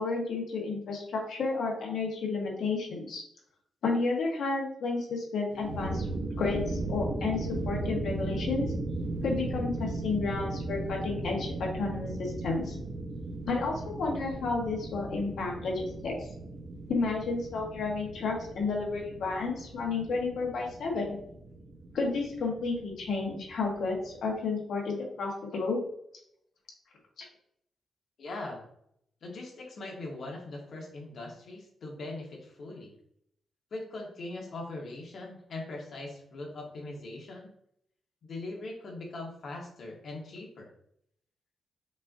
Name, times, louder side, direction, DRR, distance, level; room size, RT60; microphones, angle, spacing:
voice 1, 0.0-3.2 3.8-8.7 9.2-12.8 13.5-16.3 16.9-21.2 21.9-25.8 27.2-27.3, left 3 dB, 75° left, 0 dB, 1.1 m, -31 dB
sound 1, 5.5-24.3, right 2 dB, 40° right, 0.7 m, -37 dB
voice 2, 28.2-28.6 29.2-32.9 33.7-37.5 38.2-40.7, left 2 dB, 55° left, -1 dB, 1.2 m, -41 dB
5.3 x 2.6 x 2.6 m, 0.71 s
wide cardioid pair, 155°, 0 cm